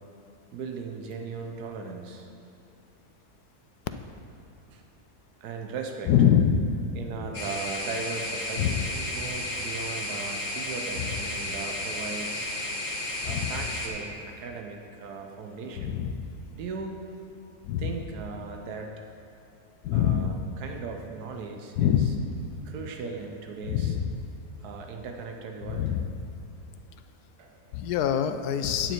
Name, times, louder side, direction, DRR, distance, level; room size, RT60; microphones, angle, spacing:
voice 1, 0.5-2.3 4.7-4.8 5.4-6.1 6.9-12.5 13.2-16.0 16.5-17.0 17.8-18.9 19.9-22.1 22.6-24.0 24.6-25.9 27.4-27.8, right 4 dB, 90° right, 3 dB, 1.3 m, -38 dB
voice 2, 6.1-6.8 8.6-8.9 11.0-11.1 13.3-13.5 15.8-16.2 17.7-17.9 19.8-20.4 21.8-22.3 23.7-24.1 25.7-26.1 27.7-28.9, left 9 dB, 85° left, 9 dB, 1.2 m, -25 dB
sound 1, 7.3-13.9, left 1 dB, 50° left, 1.6 m, -33 dB
9.2 x 8.8 x 4.5 m, 2.8 s
omnidirectional pair, 1.6 m